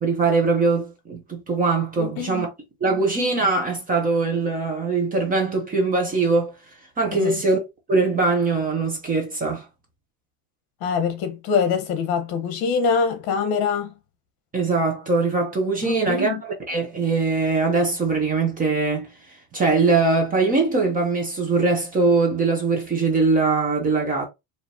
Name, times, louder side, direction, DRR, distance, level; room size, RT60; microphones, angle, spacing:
voice 1, 0.0-2.5 2.8-6.5 7.0-7.6 7.9-9.6 14.5-19.1 19.5-24.3, right 3 dB, 20° right, 0.7 m, -21 dB
voice 2, 2.0-2.5 7.1-7.4 10.8-13.9 15.8-16.4, left 6 dB, 50° left, 1.1 m, -24 dB
4.9 x 2.7 x 2.7 m
cardioid pair, 175°, 46 cm